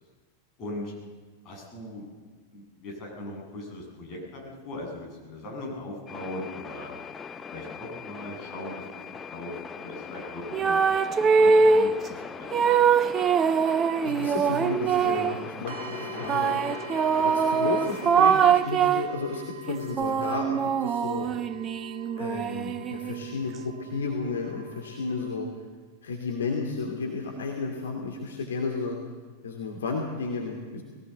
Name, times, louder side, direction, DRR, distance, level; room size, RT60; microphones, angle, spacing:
voice 1, 0.6-0.9 1.4-2.1 2.5-6.9 7.5-8.9 9.3-10.8 11.2-12.7 17.0-17.3 21.2-21.3, left 1 dB, 35° left, -1 dB, 7.6 m, -39 dB
sound 1, 6.1-18.7, left 5 dB, 15° left, 0.7 m, -40 dB
sound 2, 10.5-12.0 12.5-15.4 16.3-19.2 19.7-23.3, right 6 dB, 25° right, 0.7 m, -23 dB
voice 2, 14.0-16.6 17.2-21.3 22.2-25.5 26.0-29.0 29.4-30.8, left 4 dB, 65° left, 1 dB, 2.8 m, -32 dB
sound 3, 15.7-25.3, equal, 60° right, 2.4 m, -42 dB
21.0 x 17.5 x 8.0 m, 1.4 s
figure-of-eight pair, 90°, 0 cm